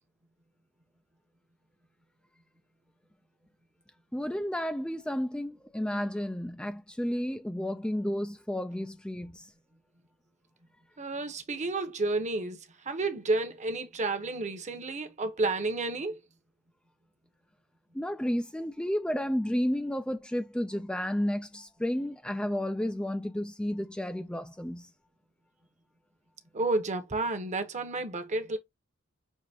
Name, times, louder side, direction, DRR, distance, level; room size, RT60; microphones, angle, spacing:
voice 1, 4.1-9.4 17.9-24.9, equal, 5° left, 0.4 m, -32 dB
voice 2, 11.0-12.6 12.8-16.2 26.5-28.6, right 2 dB, 35° right, 0.9 m, -31 dB
6.5 x 2.9 x 2.8 m
head